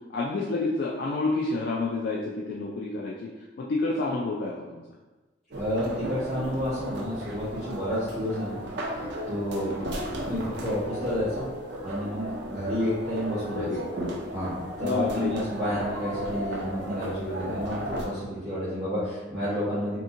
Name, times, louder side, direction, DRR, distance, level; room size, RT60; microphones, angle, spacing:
voice 1, 0.1-3.3 3.6-4.8 13.5-13.8 14.8-15.3 15.6-15.7, left 3 dB, 55° left, -3 dB, 0.3 m, -29 dB
voice 2, 5.5-8.6 8.8-8.9 9.3-9.8 10.2-11.5 11.8-13.7 14.3-20.0, equal, ahead, -17 dB, 1.2 m, -30 dB
sound 1, 5.5-18.1, equal, 60° right, 0.5 m, -35 dB
3.5 x 2.8 x 2.5 m, 1.2 s
head